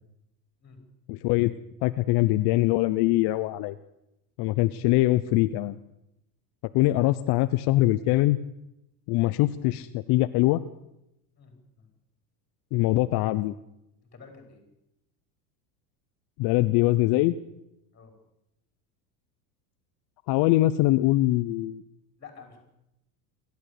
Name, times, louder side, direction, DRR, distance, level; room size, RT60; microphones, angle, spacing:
voice 1, 1.1-1.5 1.8-3.8 4.4-5.8 6.7-8.4 9.1-10.6 12.7-13.5 16.4-17.3 20.3-21.8, left 17 dB, 50° left, 12 dB, 0.8 m, -23 dB
voice 2, 11.4-11.9 14.1-14.6 17.9-18.1 22.2-22.6, left 5 dB, 20° left, 5 dB, 5.1 m, -49 dB
26.5 x 12.0 x 8.4 m, 0.86 s
supercardioid pair, 120°, 49 cm